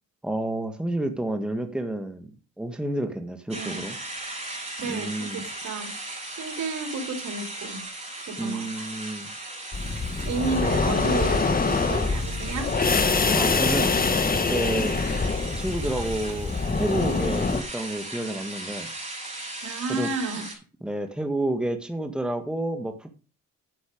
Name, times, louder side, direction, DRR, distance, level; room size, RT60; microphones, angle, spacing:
voice 1, 0.2-2.3 2.6-4.0 4.8-5.4 8.4-9.3 13.3-13.9 14.5-14.9 15.6-16.5 16.8-18.9 19.9-20.1 20.8-23.1, right 1 dB, 5° right, 6 dB, 1.8 m, -29 dB
sound 1, 3.5-20.5, right 2 dB, 20° right, 7.1 m, -37 dB
voice 2, 3.5-3.8 4.8-5.9 6.4-7.8 8.3-8.9 10.2-12.7 19.6-20.5, right 4 dB, 65° right, 6 dB, 3.1 m, -32 dB
sound 2, 9.7-17.6, left 4 dB, 30° left, 1.6 m, -24 dB
10.5 x 8.0 x 5.1 m, 0.35 s
cardioid pair, 90°, 30 cm